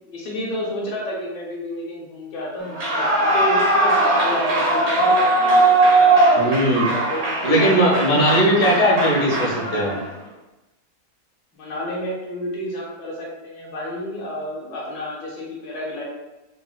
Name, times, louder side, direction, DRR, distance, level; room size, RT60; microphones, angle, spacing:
voice 1, 0.1-5.6 6.7-7.2 11.5-16.0, equal, 80° left, -4 dB, 1.6 m, -31 dB
Clapping / Cheering / Applause, 2.7-10.1, right 2 dB, 55° right, 1.3 m, -19 dB
voice 2, 6.4-6.9 7.4-10.0, equal, 60° left, -4 dB, 1.0 m, -18 dB
3.9 x 2.0 x 2.3 m, 1.0 s
omnidirectional pair, 2.2 m